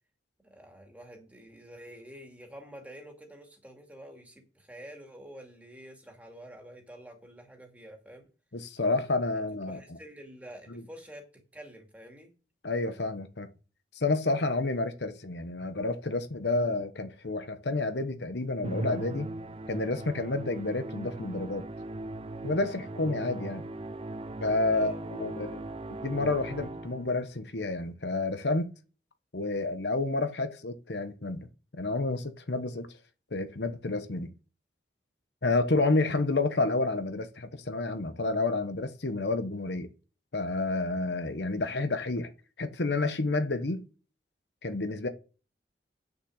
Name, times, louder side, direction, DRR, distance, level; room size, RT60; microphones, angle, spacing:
voice 1, 0.4-8.3 9.3-12.3 24.7-25.0 35.9-36.1, equal, 10° right, 2.4 m, -48 dB
voice 2, 8.5-10.0 10.7-10.8 12.6-13.5 14.0-19.3 19.7-21.7 22.4-23.6 24.4-25.6 25.9-28.7 29.3-31.5 31.7-32.9 33.3-34.3 35.4-39.9 40.3-42.3 42.6-43.8 44.6-45.1, left 2 dB, 80° left, 1.1 m, -30 dB
Musical instrument, 18.6-27.2, right 2 dB, 30° right, 0.5 m, -39 dB
8.7 x 6.7 x 6.5 m
head